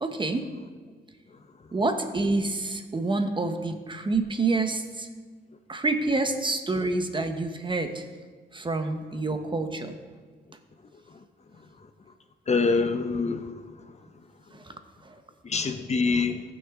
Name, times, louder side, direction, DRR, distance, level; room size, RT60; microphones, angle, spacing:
voice 1, 0.0-0.5 1.7-5.1 5.7-8.1 8.5-9.9 14.5-14.7 15.0-15.1, right 3 dB, 25° right, 7 dB, 1.0 m, -27 dB
voice 2, 12.5-13.5 15.4-16.4, left 4 dB, 35° left, 8 dB, 0.7 m, -25 dB
18.0 x 6.4 x 3.7 m, 1.5 s
cardioid pair, 90°, 19 cm